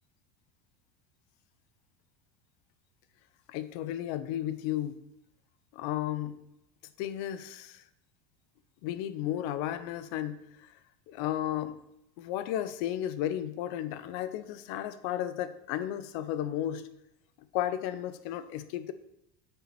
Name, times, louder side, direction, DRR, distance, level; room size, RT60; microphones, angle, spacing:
voice 1, 3.5-5.0 5.7-6.4 7.0-7.8 8.8-10.7 11.1-11.8 12.2-16.9 17.5-18.9, left 11 dB, 60° left, 13 dB, 1.0 m, -33 dB
9.2 x 7.1 x 4.4 m, 0.84 s
hypercardioid pair, 90°, 49 cm